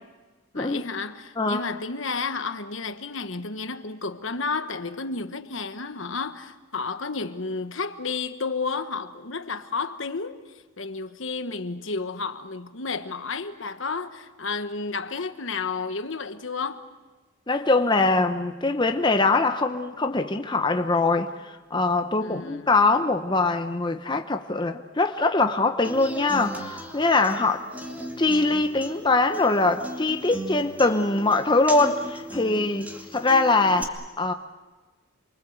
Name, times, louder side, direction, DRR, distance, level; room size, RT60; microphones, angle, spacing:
voice 1, 0.5-10.4 10.8-16.9 22.2-22.7, left 4 dB, 65° left, 1.3 m, -31 dB
voice 2, 17.5-27.7 28.2-34.3, left 3 dB, 20° left, 0.9 m, -23 dB
Human voice / Acoustic guitar, 25.8-33.8, right 1 dB, 5° right, 2.3 m, -38 dB
28.0 x 24.0 x 8.0 m
head